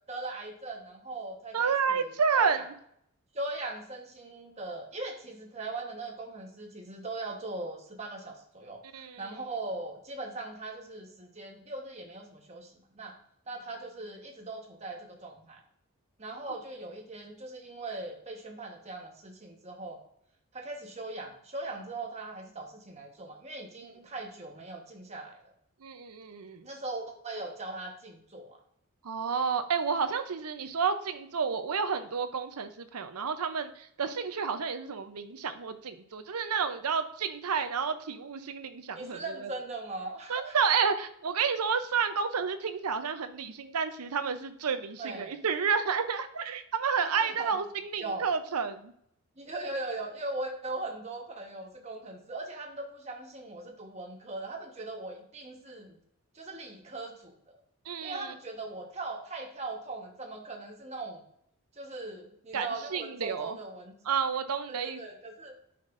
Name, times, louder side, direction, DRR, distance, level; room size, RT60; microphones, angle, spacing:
voice 1, 0.0-2.1 2.3-2.7 3.3-13.2 13.5-15.6 16.2-20.0 20.5-25.5 26.6-28.6 38.9-40.5 45.0-45.4 47.0-47.6 48.0-48.3 49.4-56.0 56.3-57.6 58.0-61.2 61.7-63.9 64.7-65.5, right 2 dB, 30° right, 2 dB, 1.1 m, -40 dB
voice 2, 1.5-2.6 8.9-9.2 25.8-26.7 29.0-39.2 40.3-48.9 57.9-58.3 62.5-63.6 64.1-65.0, right 6 dB, 85° right, 9 dB, 0.7 m, -30 dB
9.4 x 5.9 x 2.6 m, 0.70 s
head